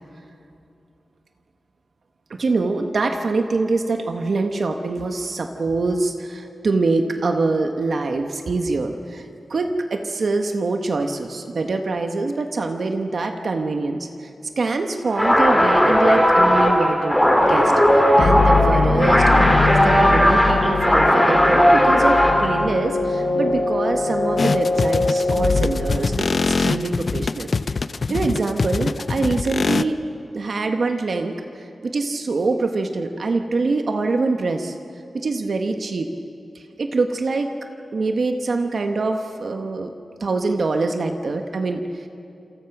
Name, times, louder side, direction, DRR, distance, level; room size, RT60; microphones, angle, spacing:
voice 1, 2.4-14.1 14.6-17.2 17.5-27.5 28.1-29.9 30.3-31.3 31.8-34.8 35.1-36.1 36.8-37.5 37.9-39.9 40.2-41.8, right 3 dB, 55° right, 5 dB, 1.3 m, -24 dB
sound 1, 15.1-22.5, equal, 5° left, 3.5 m, -16 dB
sound 2, 18.2-26.8, left 3 dB, 60° left, 1.1 m, -22 dB
strange-effect-one, 24.4-29.8, left 4 dB, 45° left, 0.6 m, -23 dB
28.0 x 28.0 x 6.1 m, 2.7 s
wide cardioid pair, 165°, 0 cm